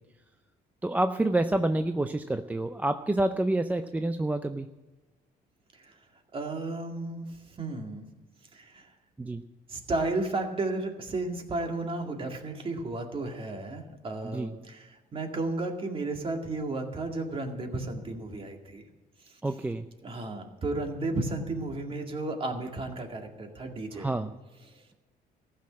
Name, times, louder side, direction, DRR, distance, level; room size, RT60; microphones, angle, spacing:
voice 1, 0.8-4.7 9.2-9.4 14.2-14.5 19.4-19.9 24.0-24.3, right 2 dB, 10° right, 8 dB, 0.5 m, -28 dB
voice 2, 6.3-8.0 8.5-8.9 9.7-18.8 19.2-19.4 20.0-24.1 24.6-24.8, right 2 dB, 30° right, 3 dB, 2.1 m, -33 dB
14.5 x 6.4 x 9.7 m, 1.2 s
cardioid pair, 110°, 17 cm